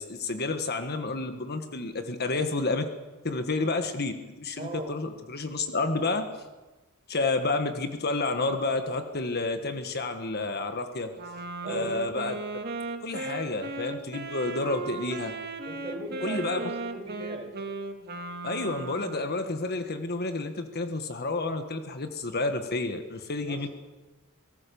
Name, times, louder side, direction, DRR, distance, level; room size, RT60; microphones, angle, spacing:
voice 1, 0.0-2.9 3.2-6.2 7.1-11.1 11.7-12.4 13.0-15.3 16.2-16.6 18.4-23.7, left 3 dB, 50° left, 7 dB, 1.5 m, -30 dB
voice 2, 4.6-4.9 11.6-11.9 15.6-17.5 23.5-23.6, right 1 dB, 30° right, 0 dB, 6.3 m, -38 dB
Wind instrument woodwind instrument, 11.2-19.4, right 3 dB, 50° right, 2.0 m, -37 dB
24.5 x 19.0 x 7.0 m, 1.2 s
head